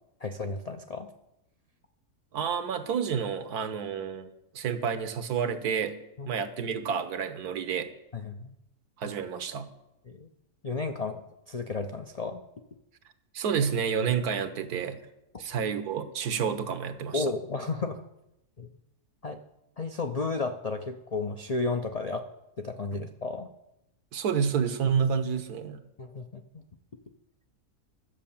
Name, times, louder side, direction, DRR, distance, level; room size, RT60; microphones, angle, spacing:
voice 1, 0.2-1.1 6.2-6.3 8.1-8.5 10.1-10.3 10.6-12.4 17.1-18.0 18.6-18.7 19.2-19.4 19.8-22.3 22.6-23.5 26.0-26.6, left 3 dB, 70° left, 6 dB, 0.3 m, -33 dB
voice 2, 2.3-4.3 4.5-5.9 6.3-7.9 9.0-9.7 13.3-15.0 15.4-17.3 24.1-25.8, right 7 dB, 85° right, 10 dB, 1.5 m, -29 dB
11.5 x 7.7 x 7.1 m, 0.87 s
omnidirectional pair, 1.6 m